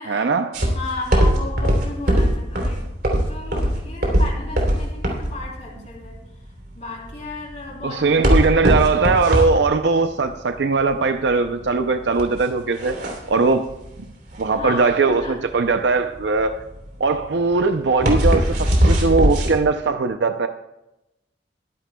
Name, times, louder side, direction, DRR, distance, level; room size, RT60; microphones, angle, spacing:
voice 1, 0.1-0.5 7.8-13.0 13.3-13.7 14.4-16.6 17.0-20.5, right 4 dB, 75° right, 8 dB, 0.6 m, -20 dB
sound 1, 0.5-19.5, equal, 60° right, 3.4 m, -21 dB
voice 2, 0.7-6.2 6.7-8.2 14.5-15.4, left 2 dB, 40° left, -2 dB, 3.6 m, -34 dB
22.5 x 11.0 x 2.3 m, 0.92 s
head